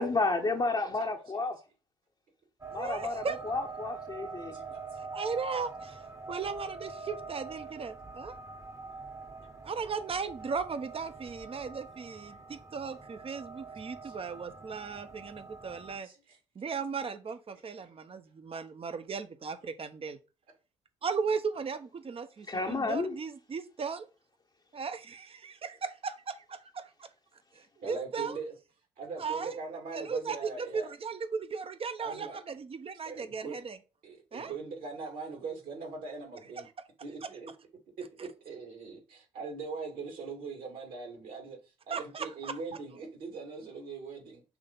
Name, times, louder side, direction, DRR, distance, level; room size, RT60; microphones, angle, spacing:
voice 1, 0.0-1.5 2.7-4.5 22.5-23.1, left 3 dB, 30° left, 1.0 m, -31 dB
sound 1, 2.6-16.0, right 4 dB, 20° right, 1.1 m, -45 dB
voice 2, 2.8-3.4 5.1-8.3 9.6-16.1 16.5-20.2 21.0-24.1 24.7-27.1 27.5-28.4 29.2-29.6 29.9-33.8 34.3-34.5 38.2-38.3 41.9-42.5, right 5 dB, 40° right, 0.9 m, -37 dB
voice 3, 16.0-16.4 17.8-17.9 18.5-18.6 18.9-19.0 27.8-28.5 29.0-30.9 32.0-32.4 33.1-33.6 34.0-36.7 37.0-37.5 38.2-41.6 41.9-44.4, right 4 dB, 65° right, 2.7 m, -41 dB
6.1 x 3.2 x 5.4 m
hypercardioid pair, 50°, 16 cm